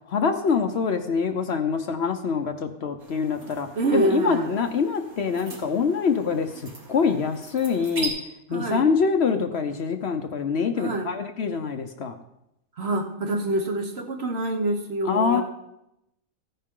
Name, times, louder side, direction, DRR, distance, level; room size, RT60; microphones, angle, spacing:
voice 1, 0.1-8.1 8.5-12.1 15.0-15.4, left 5 dB, 55° left, 7 dB, 0.9 m, -25 dB
sound 1, 3.0-8.1, right 3 dB, 80° right, 2.7 m, -40 dB
voice 2, 3.7-4.6 8.5-8.9 10.8-11.1 12.8-15.4, right 2 dB, 50° right, 4 dB, 1.3 m, -26 dB
15.0 x 9.9 x 3.7 m, 0.85 s
omnidirectional pair, 1.4 m